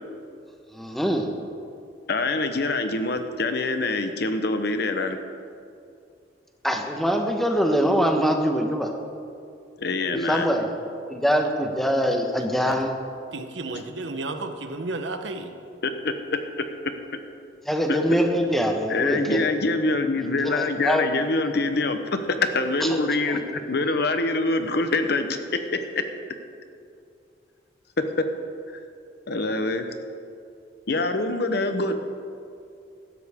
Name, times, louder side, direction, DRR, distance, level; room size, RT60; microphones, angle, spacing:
voice 1, 0.7-1.3 6.6-8.9 10.3-10.7 11.1-12.9 17.7-19.5 20.2-21.0 22.8-22.9 23.3-23.4, equal, ahead, 3 dB, 1.2 m, -23 dB
voice 2, 2.1-5.2 9.8-10.5 13.7-13.8 15.8-16.6 17.9-18.0 18.9-26.0 28.0-28.3 29.3-29.8 30.9-31.9, left 3 dB, 60° left, 8 dB, 1.0 m, -25 dB
voice 3, 13.3-15.5, right 2 dB, 80° right, 7 dB, 1.0 m, -32 dB
16.5 x 13.0 x 3.7 m, 2.5 s
head